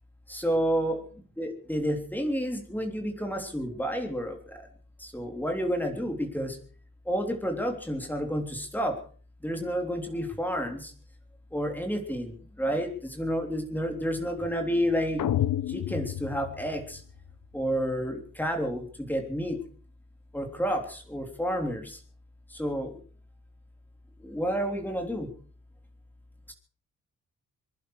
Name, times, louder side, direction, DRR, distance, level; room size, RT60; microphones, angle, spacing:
voice 1, 0.3-1.0 1.4-4.4 5.0-6.5 7.1-8.9 9.4-10.9 11.5-15.2 15.7-17.0 17.5-19.6 20.3-22.0 22.6-22.9 24.2-25.3 26.5-26.6, equal, 5° left, 4 dB, 3.4 m, -30 dB
sound 1, 15.2-17.3, left 12 dB, 80° left, 1.0 m, -30 dB
26.0 x 11.0 x 4.8 m, 0.42 s
wide cardioid pair, 140°, 32 cm